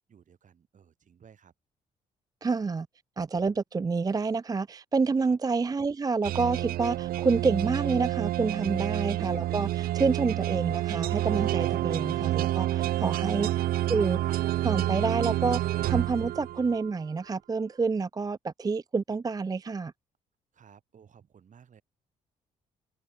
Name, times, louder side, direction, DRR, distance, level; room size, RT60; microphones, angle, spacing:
voice 1, 0.1-1.5 5.2-5.4 8.7-9.1 11.6-11.9 20.5-21.8, right 7 dB, 55° right, 6.4 m, -57 dB
voice 2, 2.4-2.9 3.2-13.6 13.9-14.2 14.6-15.6 15.9-19.9, right 4 dB, 25° right, 0.5 m, -28 dB
sound 1, 6.2-16.9, right 14 dB, 70° right, 0.7 m, -29 dB
supercardioid pair, 60°, 16 cm